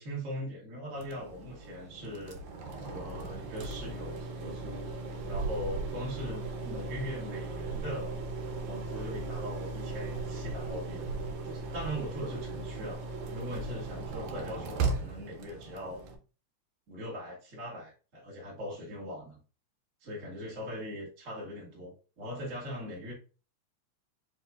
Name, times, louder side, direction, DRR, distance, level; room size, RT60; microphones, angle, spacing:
voice 1, 0.0-2.4 2.8-4.9 5.3-8.2 8.7-11.1 11.4-13.0 13.3-16.0 16.9-19.4 20.0-23.1, equal, 35° right, 1.3 m, -40 dB
sound 1, 1.0-16.2, right 3 dB, 80° right, 2.2 m, -37 dB
5.5 x 2.7 x 3.5 m
omnidirectional pair, 3.4 m